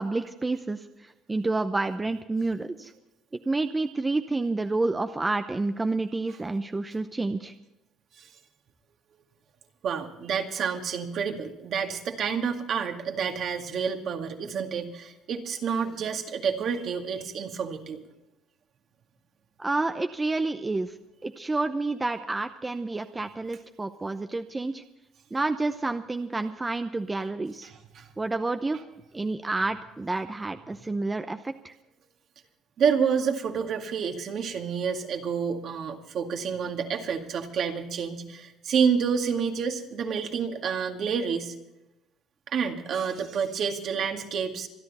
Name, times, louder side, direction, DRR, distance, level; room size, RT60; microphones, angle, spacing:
voice 1, 0.0-2.9 3.5-7.5 19.6-20.9 21.2-24.8 25.3-27.7 28.2-28.8 29.1-31.7, right 3 dB, 15° right, 8 dB, 0.7 m, -29 dB
voice 2, 9.8-18.0 27.6-28.1 32.8-41.5 42.5-44.7, right 6 dB, 55° right, 4 dB, 2.1 m, -29 dB
26.0 x 10.5 x 4.2 m, 0.93 s
cardioid pair, 115°, 0 cm